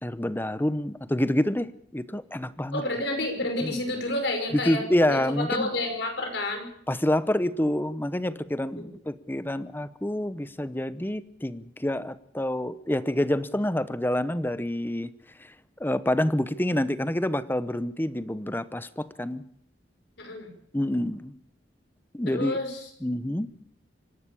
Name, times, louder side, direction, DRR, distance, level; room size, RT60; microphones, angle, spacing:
voice 1, 0.0-2.8 3.6-3.8 4.5-5.7 6.9-15.1 15.4-15.5 15.8-19.4 20.7-21.4 22.1-22.6 23.0-23.5, left 1 dB, 10° left, 15 dB, 0.8 m, -27 dB
voice 2, 2.7-4.8 5.1-6.7 8.8-8.9 20.2-20.5 22.3-22.9, left 2 dB, 70° left, 4 dB, 5.8 m, -30 dB
25.5 x 12.0 x 8.5 m, 0.68 s
head